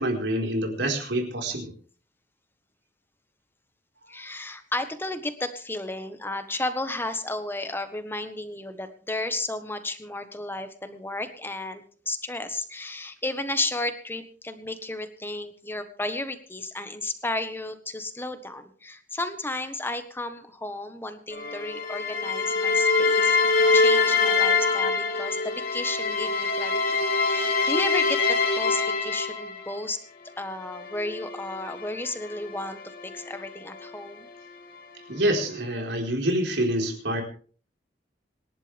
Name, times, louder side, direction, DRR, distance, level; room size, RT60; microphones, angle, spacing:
voice 1, 0.0-1.7 4.2-4.3 35.1-37.2, right 1 dB, 80° right, 2 dB, 4.6 m, -26 dB
voice 2, 4.1-23.4 23.7-30.0 30.4-34.3, left 2 dB, 10° left, 9 dB, 1.4 m, -33 dB
sound 1, 21.3-29.8 30.6-33.9, left 4 dB, 55° left, 2.9 m, -25 dB
26.5 x 11.0 x 3.5 m, 0.42 s
head